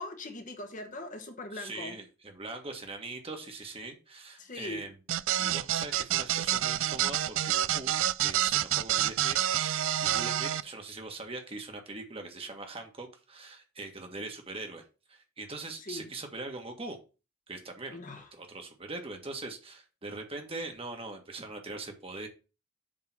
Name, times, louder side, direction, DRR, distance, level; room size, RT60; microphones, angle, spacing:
voice 1, 0.0-2.0 4.4-4.9 15.8-16.1 17.9-18.3, left 2 dB, 40° left, 1.2 m, -41 dB
voice 2, 1.5-4.9 5.4-17.0 17.5-22.3, right 2 dB, 30° right, 1.5 m, -42 dB
sound 1, 5.1-10.6, right 12 dB, 75° right, 0.4 m, -28 dB
7.6 x 3.8 x 6.0 m
head